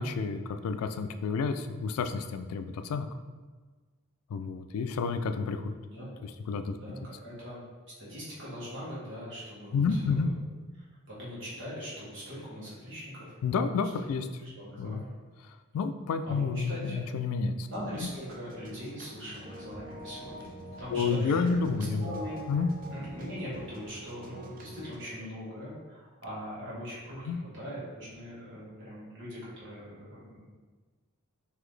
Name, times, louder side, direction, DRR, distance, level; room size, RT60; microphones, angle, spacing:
voice 1, 0.0-3.1 4.3-5.8 6.2-6.8 9.7-10.3 13.4-14.3 14.8-15.0 15.5-17.7 20.9-22.2 22.5-22.7 27.3-27.4, left 5 dB, 85° left, 9 dB, 0.3 m, -30 dB
voice 2, 6.7-7.6 8.0-10.3 11.1-13.3 13.9-15.1 16.2-17.0 17.7-20.5 20.8-21.5 22.0-22.4 22.9-30.5, equal, 60° right, -7 dB, 1.5 m, -41 dB
sound 1, 17.8-25.0, right 1 dB, 40° right, 0.4 m, -46 dB
3.8 x 2.9 x 3.2 m, 1.4 s
head